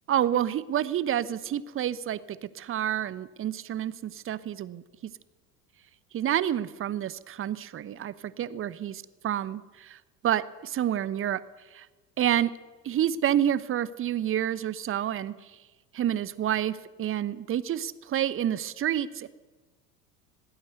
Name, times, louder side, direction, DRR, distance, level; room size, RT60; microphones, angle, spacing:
voice 1, 0.1-5.1 6.1-9.0 9.2-10.0 10.2-11.4 11.7-11.9 12.2-12.5 12.8-15.3 15.9-19.3, right 11 dB, 25° right, 18 dB, 0.9 m, -28 dB
19.5 x 16.5 x 8.1 m, 1.2 s
figure-of-eight pair, 70°, 48 cm